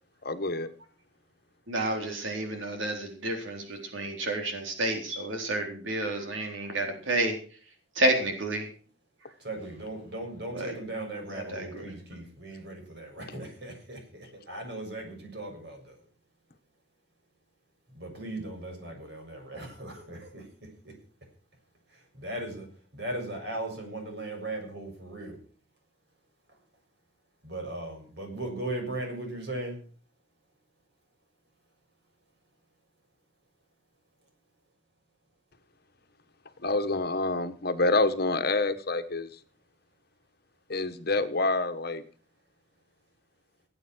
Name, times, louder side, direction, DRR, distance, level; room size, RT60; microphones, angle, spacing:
voice 1, 0.2-0.7 36.6-39.3 40.7-42.0, left 2 dB, 50° left, 9 dB, 1.4 m, -27 dB
voice 2, 1.7-7.4 7.9-8.7 10.5-10.7 11.3-11.9, right 1 dB, 80° right, 3 dB, 3.9 m, -30 dB
voice 3, 9.4-16.0 18.0-21.0 21.9-25.4 27.4-29.8, right 2 dB, 60° right, 3 dB, 6.9 m, -38 dB
18.5 x 8.7 x 6.3 m, 0.41 s
head